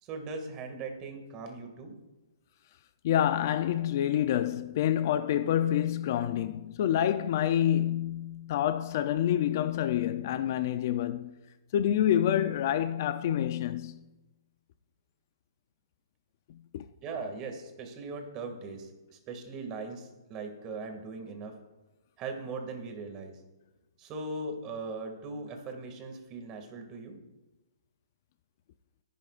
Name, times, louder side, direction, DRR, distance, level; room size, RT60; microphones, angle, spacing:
voice 1, 0.0-2.0 17.0-21.6 22.2-23.4 24.0-27.2, right 3 dB, 25° right, 2.2 m, -39 dB
voice 2, 3.0-11.4 11.7-14.0 16.5-16.8, left 11 dB, 45° left, 0.5 m, -27 dB
22.0 x 11.0 x 2.5 m
hypercardioid pair, 150°, 2 cm